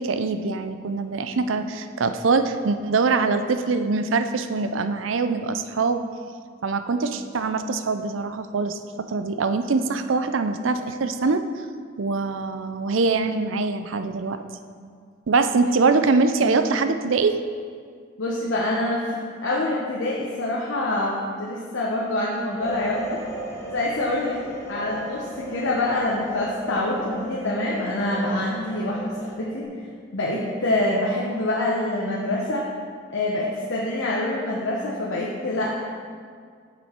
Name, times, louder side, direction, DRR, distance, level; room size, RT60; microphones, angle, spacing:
voice 1, 0.0-6.0 6.6-11.4 12.0-14.4 15.3-17.4, right 4 dB, 75° right, 9 dB, 0.5 m, -23 dB
voice 2, 18.2-23.2 23.7-24.4 24.7-29.7 30.1-32.7 33.1-35.8, left 1 dB, 75° left, -4 dB, 1.0 m, -26 dB
sound 1, 22.6-29.6, right 1 dB, 15° left, 1.2 m, -36 dB
7.9 x 6.9 x 4.4 m, 2.1 s
head